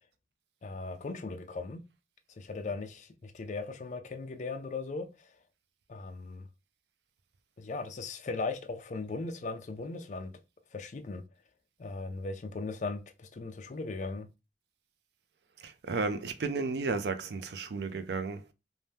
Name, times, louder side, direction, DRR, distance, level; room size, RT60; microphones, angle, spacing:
voice 1, 0.6-1.8 2.4-5.1 5.9-6.5 7.6-10.3 10.7-11.2 11.8-14.3, left 3 dB, 40° left, 0.4 m, -38 dB
voice 2, 15.6-18.5, right 4 dB, 70° right, 0.4 m, -33 dB
2.7 x 2.1 x 3.3 m
head